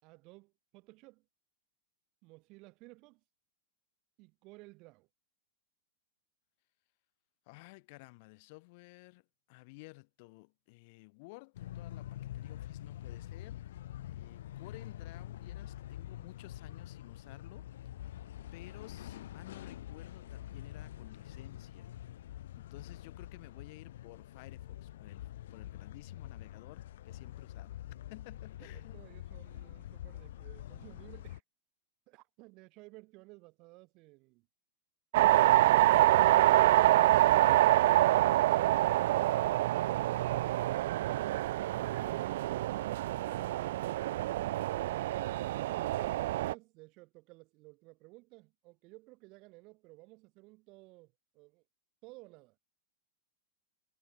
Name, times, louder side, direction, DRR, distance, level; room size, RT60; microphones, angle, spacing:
voice 1, 0.0-1.2 2.2-3.2 4.2-5.1 28.6-31.4 32.1-34.5 45.2-51.6 52.0-52.6, right 24 dB, 45° right, 5.8 m, -56 dB
voice 2, 7.5-9.2 9.5-13.7 14.1-17.7 18.5-21.9 22.3-27.8 28.1-29.0 42.1-43.9, left 27 dB, 55° left, 4.9 m, -54 dB
sound 1, 11.5-31.4, left 13 dB, 75° left, 1.0 m, -46 dB
sound 2, 35.1-46.5, right 15 dB, 65° right, 0.5 m, -26 dB
hypercardioid pair, 130°, 0 cm